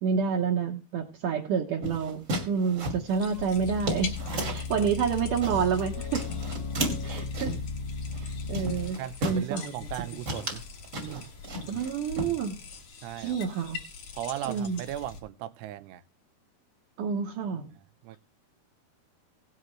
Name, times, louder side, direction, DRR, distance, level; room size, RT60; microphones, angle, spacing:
voice 1, 0.0-4.1 4.5-6.3 7.0-7.6 8.2-9.7 11.7-12.6 13.2-13.8 14.5-14.8 17.0-17.7, right 6 dB, 65° right, 2.2 m, -29 dB
sound 1, 1.8-4.7 5.1-5.8 6.1-7.7 8.1-8.3 8.5-9.4 9.8-10.0 10.2-11.9 12.2-12.8, right 1 dB, 30° right, 1.4 m, -34 dB
sound 2, 3.1-15.2, left 6 dB, 55° left, 2.6 m, -44 dB
sound 3, 3.6-8.9, left 4 dB, 75° left, 1.6 m, -35 dB
voice 2, 9.0-10.7 11.0-11.3 13.0-13.4 14.1-16.0 18.0-18.2, right 12 dB, 85° right, 2.8 m, -37 dB
17.5 x 7.5 x 3.1 m
omnidirectional pair, 4.6 m